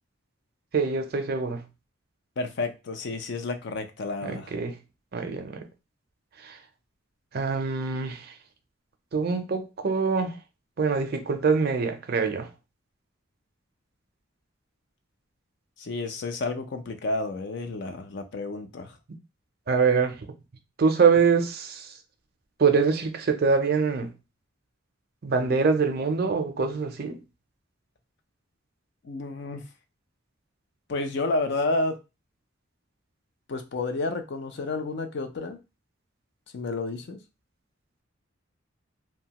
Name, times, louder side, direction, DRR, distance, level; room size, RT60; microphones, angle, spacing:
voice 1, 0.7-1.6 4.2-4.8 5.1-5.7 6.4-6.6 7.3-8.4 9.1-10.4 10.8-12.5 19.7-20.3 20.8-22.0 22.6-24.1 25.2-27.2, right 5 dB, 50° right, 0.5 m, -24 dB
voice 2, 2.4-4.5 15.8-18.9 29.0-29.6 30.9-32.0 33.5-35.6 36.5-37.2, left 2 dB, 55° left, 0.4 m, -30 dB
2.7 x 2.2 x 2.8 m
head